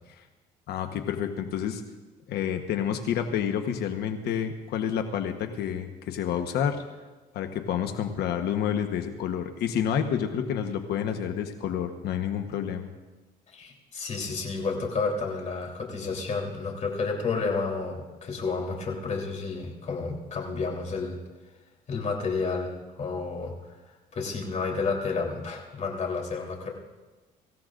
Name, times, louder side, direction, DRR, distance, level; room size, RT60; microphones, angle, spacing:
voice 1, 0.7-1.8 2.3-6.8 7.3-12.9, left 8 dB, 75° left, 5 dB, 1.2 m, -29 dB
voice 2, 13.5-21.2 21.9-22.7 23.0-26.7, left 4 dB, 45° left, 0 dB, 3.5 m, -31 dB
24.5 x 15.0 x 2.6 m, 1.2 s
cardioid pair, 110°, 17 cm